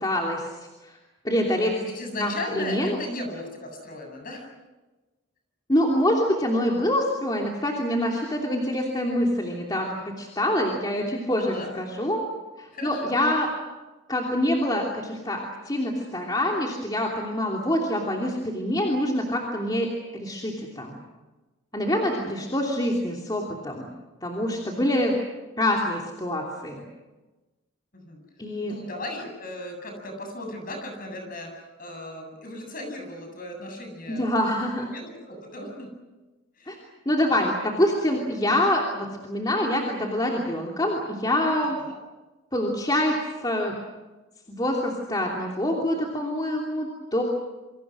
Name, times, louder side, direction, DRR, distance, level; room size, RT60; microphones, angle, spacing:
voice 1, 0.0-0.5 0.8-0.9 1.2-1.8 2.2-3.0 5.7-12.2 12.6-13.5 14.1-15.4 15.6-21.0 21.7-23.9 24.2-25.2 25.6-26.8 28.4-28.7 34.2-34.9 36.7-36.8 37.0-37.5 37.8-41.8 42.5-43.2 43.4-43.7 44.5-47.2, left 1 dB, 20° left, -1 dB, 2.9 m, -25 dB
voice 2, 1.8-4.5 11.4-11.7 12.7-13.2 22.0-22.5 27.9-28.2 28.6-34.6 34.9-35.9 36.6-36.9 37.2-37.3 41.8-42.0, left 1 dB, 45° left, 3 dB, 7.9 m, -37 dB
28.0 x 25.5 x 6.2 m, 1.2 s
head